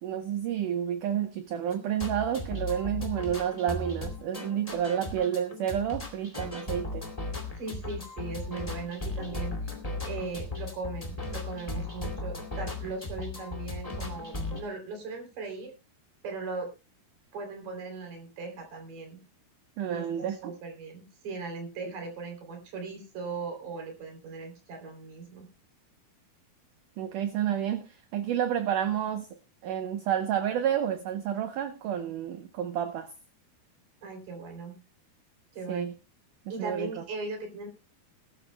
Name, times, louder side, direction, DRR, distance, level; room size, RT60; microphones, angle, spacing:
voice 1, 0.0-7.1 19.8-20.5 27.0-29.3 29.6-33.1 35.7-35.9 36.6-36.9, right 9 dB, 75° right, 1.9 m, -30 dB
sound 1, 1.7-14.6, left 2 dB, 15° left, 1.3 m, -36 dB
voice 2, 7.6-9.7 10.1-15.7 16.2-16.7 17.3-19.2 19.9-25.5 34.0-34.7 35.5-35.8 36.5-37.7, right 4 dB, 55° right, 4.5 m, -38 dB
21.0 x 13.0 x 2.2 m
omnidirectional pair, 4.6 m